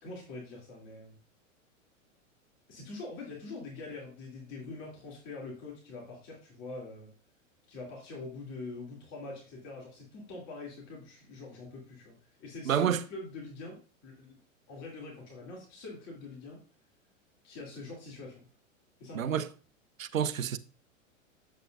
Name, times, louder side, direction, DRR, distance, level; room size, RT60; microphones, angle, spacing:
voice 1, 0.0-1.1 2.7-7.1 7.7-14.4 14.7-16.6 17.4-18.5 19.0-19.3, left 3 dB, 45° left, 2.8 m, -44 dB
voice 2, 12.6-13.0 19.1-19.5 20.0-20.6, right 9 dB, 85° right, 0.7 m, -28 dB
8.2 x 7.3 x 2.5 m
hypercardioid pair, 100°, 39 cm